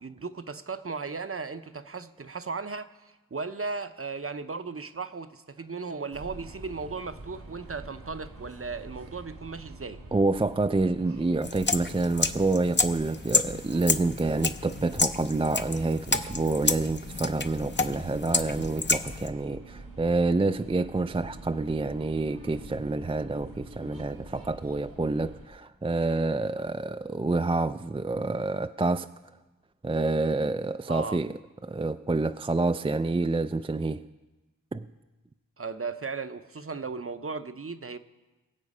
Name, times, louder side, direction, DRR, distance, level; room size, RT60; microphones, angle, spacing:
voice 1, 0.0-10.0 30.9-31.2 35.6-38.0, right 4 dB, 40° right, 0.7 m, -36 dB
sound 1, 6.1-25.5, right 2 dB, 85° right, 2.0 m, -46 dB
voice 2, 10.1-29.1 29.8-34.1 34.7-34.9, right 3 dB, 15° right, 0.3 m, -28 dB
sound 2, 11.4-19.3, left 3 dB, 30° left, 0.7 m, -30 dB
22.0 x 7.8 x 5.4 m
wide cardioid pair, 45°, 34 cm